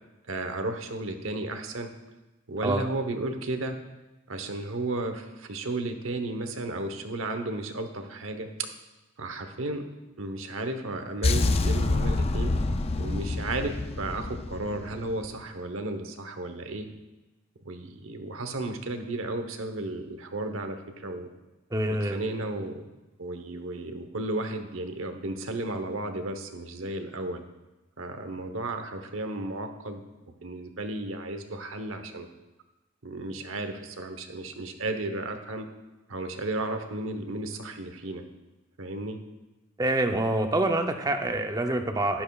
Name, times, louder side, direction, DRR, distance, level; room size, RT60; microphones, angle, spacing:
voice 1, 0.3-1.9 2.5-3.8 4.3-8.7 9.2-9.8 10.2-12.6 13.0-16.9 17.6-21.3 21.9-22.8 23.2-27.4 28.0-30.0 30.4-32.3 33.0-35.7 36.1-38.2 38.8-39.2, right 2 dB, 75° right, 7 dB, 1.0 m, -33 dB
sound 1, 11.2-15.3, left 2 dB, 30° left, 0.4 m, -27 dB
voice 2, 21.7-22.2 39.8-42.2, right 1 dB, 20° right, 6 dB, 0.6 m, -26 dB
11.5 x 10.5 x 2.4 m, 1.1 s
head